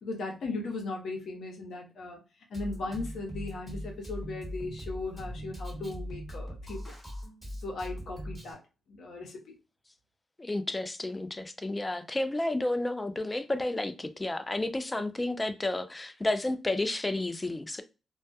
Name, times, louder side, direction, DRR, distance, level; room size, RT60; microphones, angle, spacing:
voice 1, 0.0-2.2 2.5-6.9 7.6-8.6 8.9-9.6, left 3 dB, 65° left, 0.8 m, -37 dB
Drum kit, 2.5-8.5, equal, ahead, 1.3 m, -40 dB
voice 2, 10.4-17.8, left 2 dB, 20° left, 0.3 m, -31 dB
2.2 x 2.1 x 2.6 m
cardioid pair, 90°, 0 cm